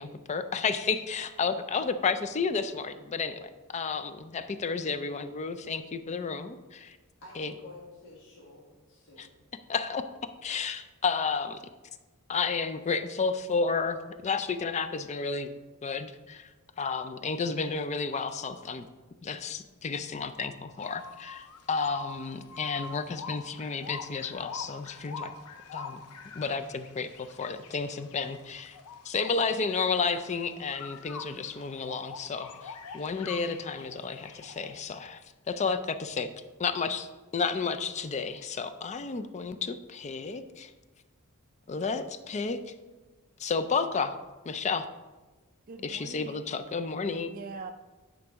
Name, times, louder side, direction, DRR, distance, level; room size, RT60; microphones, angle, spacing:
voice 1, 0.0-7.0 7.4-7.5 9.2-9.3 9.7-10.0 10.4-11.6 12.3-15.5 15.8-16.5 16.8-18.9 19.2-25.3 25.7-26.0 26.3-28.8 29.0-35.2 35.5-36.3 36.6-37.1 37.3-40.7 41.7-42.6 43.4-44.1 44.4-44.9 45.8-47.3, left 5 dB, 30° left, 10 dB, 0.4 m, -31 dB
voice 2, 7.2-9.3, left 2 dB, 55° left, -4 dB, 1.5 m, -50 dB
sound 1, 20.8-34.8, left 4 dB, 90° left, 0.5 m, -45 dB
voice 3, 45.7-46.5 47.3-47.7, right 4 dB, 40° right, 4 dB, 0.3 m, -42 dB
9.7 x 5.2 x 3.6 m, 1.2 s
head